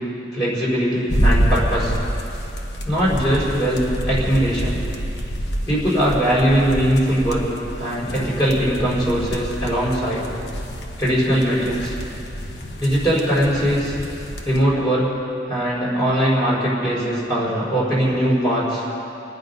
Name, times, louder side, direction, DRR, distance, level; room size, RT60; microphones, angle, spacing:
voice 1, 0.3-1.9 2.8-4.8 5.7-7.4 7.8-10.2 11.0-11.9 12.8-14.0 14.4-15.1 15.5-18.8, equal, 25° left, -7 dB, 5.0 m, -20 dB
sound 1, 1.1-14.6, equal, 65° left, 1.3 m, -27 dB
28.0 x 9.5 x 5.4 m, 2.7 s
head